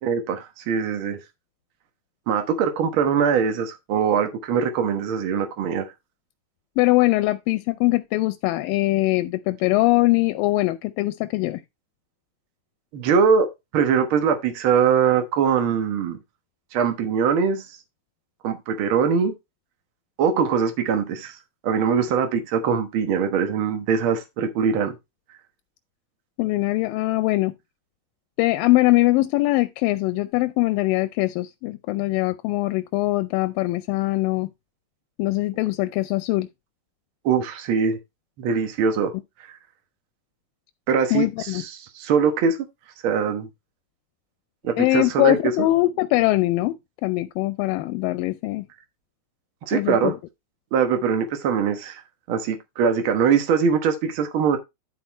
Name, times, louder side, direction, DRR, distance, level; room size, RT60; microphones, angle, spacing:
voice 1, 0.0-1.2 2.3-5.9 12.9-13.5 13.7-16.2 16.7-17.6 18.4-19.3 20.2-21.4 21.6-24.9 37.2-38.0 38.4-39.1 39.5-39.6 40.9-42.6 43.0-43.5 44.6-45.5 49.7-50.1 50.7-52.0 52.3-54.6, right 6 dB, 85° right, 1.1 m, -22 dB
voice 2, 6.8-11.6 26.4-27.5 28.4-34.5 35.2-36.5 41.1-41.6 44.8-46.8 47.0-48.7 49.7-50.1, left 19 dB, 80° left, 2.1 m, -22 dB
12.0 x 4.3 x 4.2 m
omnidirectional pair, 4.4 m